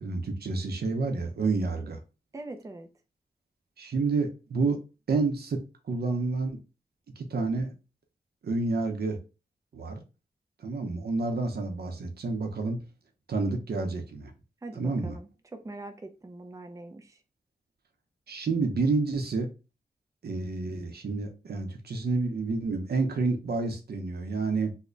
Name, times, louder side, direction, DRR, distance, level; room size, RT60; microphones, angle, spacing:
voice 1, 0.0-2.0 3.8-4.8 5.1-5.6 5.9-6.6 7.2-7.7 8.4-9.2 9.7-10.0 10.6-12.8 13.3-14.3 14.7-15.2 18.3-19.5 20.2-24.8, right 3 dB, 75° right, 4 dB, 0.7 m, -29 dB
voice 2, 2.3-2.9 14.6-17.2, right 2 dB, 20° right, 6 dB, 0.5 m, -43 dB
3.2 x 2.1 x 3.8 m, 0.31 s
wide cardioid pair, 80°, 17 cm